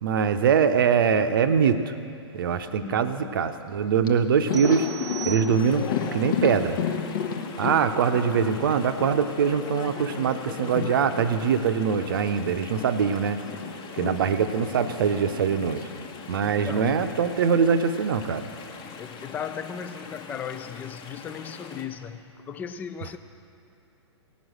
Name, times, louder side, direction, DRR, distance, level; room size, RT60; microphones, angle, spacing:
voice 1, 0.0-1.9 2.3-4.9 5.2-6.8 7.6-13.4 14.0-15.8 16.3-18.4, right 6 dB, 50° right, 9 dB, 0.8 m, -23 dB
voice 2, 2.7-3.4 7.7-8.5 16.4-17.1 18.8-23.2, left 7 dB, 10° left, 10 dB, 0.4 m, -37 dB
Thunder, 3.7-3.8 4.0-12.9 13.1-17.4 17.7-17.9 19.0-19.7, left 7 dB, 45° left, 1.1 m, -34 dB
sound 1, 4.5-6.1, right 8 dB, 80° right, 0.8 m, -39 dB
Chatter / Stream, 5.6-21.8, left 5 dB, 25° left, 1.2 m, -41 dB
18.0 x 6.3 x 7.7 m, 2.7 s
figure-of-eight pair, 115°, 15 cm